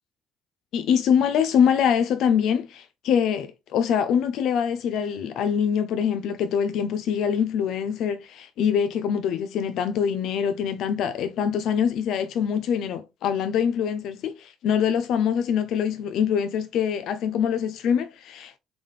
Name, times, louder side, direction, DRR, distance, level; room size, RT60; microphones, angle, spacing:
voice 1, 0.7-18.6, left 8 dB, 65° left, 0.4 m, -24 dB
3.9 x 3.7 x 3.2 m
hypercardioid pair, 50°, 0 cm